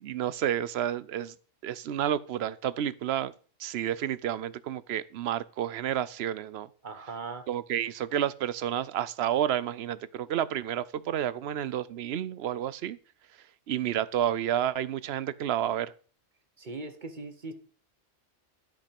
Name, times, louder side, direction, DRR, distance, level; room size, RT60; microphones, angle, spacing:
voice 1, 0.0-1.3 1.6-3.3 3.6-6.7 7.5-13.0 13.7-15.9, right 10 dB, 65° right, 17 dB, 0.8 m, -30 dB
voice 2, 6.8-7.4 16.6-17.5, right 3 dB, 45° right, 8 dB, 1.3 m, -39 dB
13.0 x 5.3 x 5.3 m, 0.41 s
omnidirectional pair, 1.2 m